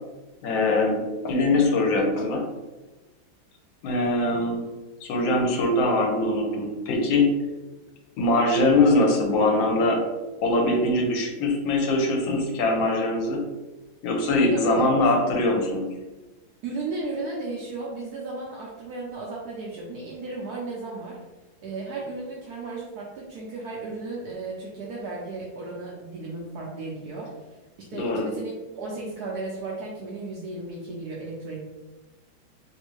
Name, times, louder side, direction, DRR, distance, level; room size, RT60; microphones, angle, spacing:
voice 1, 0.4-2.5 3.8-4.6 5.0-7.3 8.2-10.0 10.4-13.4 14.0-15.9 27.9-28.3, left 2 dB, 75° left, 1 dB, 1.4 m, -22 dB
voice 2, 14.5-14.9 16.6-21.2 21.6-27.3 27.8-31.6, right 3 dB, 75° right, -3 dB, 0.9 m, -35 dB
3.3 x 2.6 x 3.0 m, 1.2 s
omnidirectional pair, 2.1 m